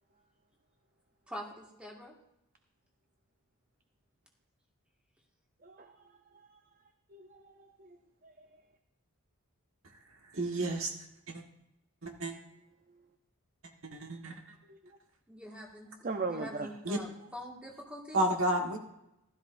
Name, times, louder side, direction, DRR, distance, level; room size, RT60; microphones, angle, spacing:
voice 1, 1.3-2.1 15.3-15.9 16.3-18.2, equal, 5° right, -2 dB, 1.8 m, -45 dB
voice 2, 5.6-5.9 7.1-8.0 8.2-8.5 14.7-14.8 16.0-16.7, right 3 dB, 40° right, 6 dB, 0.6 m, -38 dB
voice 3, 10.3-10.9 11.3-11.4 12.0-12.3 13.8-14.4 16.8-17.0 18.1-18.8, right 1 dB, 65° right, 2 dB, 1.5 m, -31 dB
15.5 x 13.0 x 2.6 m, 0.86 s
head